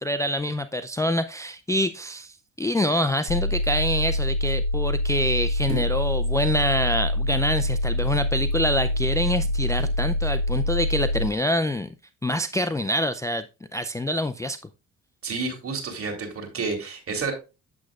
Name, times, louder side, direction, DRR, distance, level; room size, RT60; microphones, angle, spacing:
voice 1, 0.0-11.9 12.2-13.4 13.7-14.6, left 1 dB, 10° left, 9 dB, 0.4 m, -26 dB
sound 1, 3.3-11.3, left 1 dB, 75° left, 1.8 m, -25 dB
sound 2, 5.7-6.2 8.8-10.1 10.6-10.8, equal, 20° right, 2.9 m, -39 dB
voice 2, 15.2-17.3, right 4 dB, 50° right, 3 dB, 2.9 m, -30 dB
8.4 x 7.6 x 2.4 m, 0.29 s
cardioid pair, 90°, 30 cm